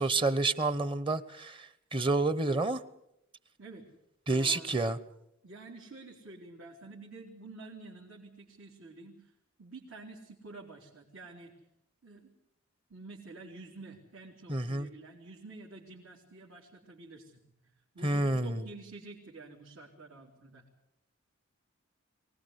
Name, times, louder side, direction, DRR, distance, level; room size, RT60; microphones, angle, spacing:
voice 1, 0.0-2.8 4.3-5.0 14.5-14.9 18.0-18.6, right 2 dB, 25° right, 15 dB, 0.9 m, -29 dB
voice 2, 4.3-4.8 5.4-9.3 9.6-11.5 12.0-12.3 12.9-17.4 17.9-20.6, right 3 dB, 75° right, -2 dB, 3.6 m, -49 dB
24.0 x 19.0 x 8.2 m, 0.79 s
head